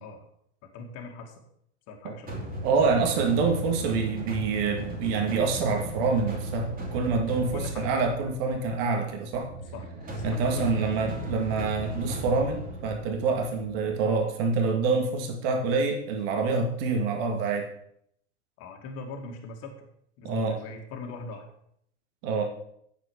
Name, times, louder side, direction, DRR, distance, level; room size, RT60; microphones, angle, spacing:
voice 1, 0.7-1.3 1.9-2.5 7.5-7.9 9.7-10.9 18.6-19.9 20.2-21.4, left 3 dB, 45° left, 3 dB, 2.0 m, -41 dB
sound 1, 2.3-14.2, right 1 dB, 25° right, 2.9 m, -36 dB
voice 2, 2.6-9.5 10.2-17.7 20.2-20.6 22.2-22.4, right 4 dB, 50° right, 3 dB, 2.0 m, -26 dB
9.1 x 7.4 x 4.7 m, 0.70 s
hypercardioid pair, 95°, 36 cm